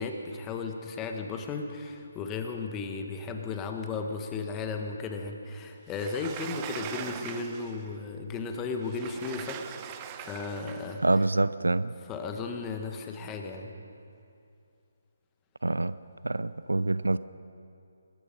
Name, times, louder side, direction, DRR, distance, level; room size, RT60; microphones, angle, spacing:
voice 1, 0.0-11.0 12.1-13.7, left 4 dB, 15° left, 4 dB, 1.6 m, -35 dB
Sliding door, 5.9-7.9 8.8-11.0, right 9 dB, 20° right, 0.9 m, -41 dB
voice 2, 11.0-11.9 15.6-16.0 16.2-17.2, right 2 dB, 75° right, 16 dB, 0.6 m, -26 dB
25.5 x 20.0 x 5.4 m, 2.5 s
figure-of-eight pair, 145°, 0 cm